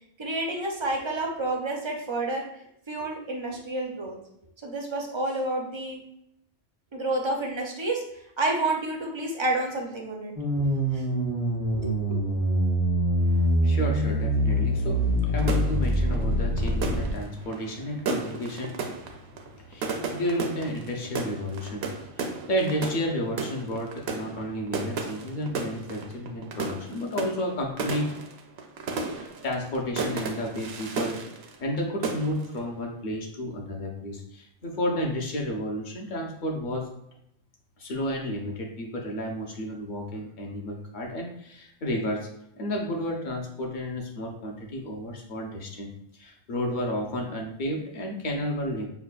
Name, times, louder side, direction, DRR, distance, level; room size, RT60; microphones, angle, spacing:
voice 1, 0.2-2.4 2.9-4.2 4.6-6.0 6.9-10.6 10.9-11.1 11.7-12.2, right 2 dB, 40° right, 0 dB, 0.4 m, -30 dB
sound 1, 10.4-17.1, equal, 75° left, 1.5 m, -24 dB
voice 2, 13.2-19.0 19.3-28.2 29.1-31.2 31.6-36.9 37.8-42.3 42.6-48.9, equal, 50° left, 0 dB, 0.8 m, -32 dB
sound 2, 15.4-31.8 32.0-32.6, right 4 dB, 65° right, 0.8 m, -34 dB
5.5 x 2.2 x 2.3 m, 0.77 s
omnidirectional pair, 1.2 m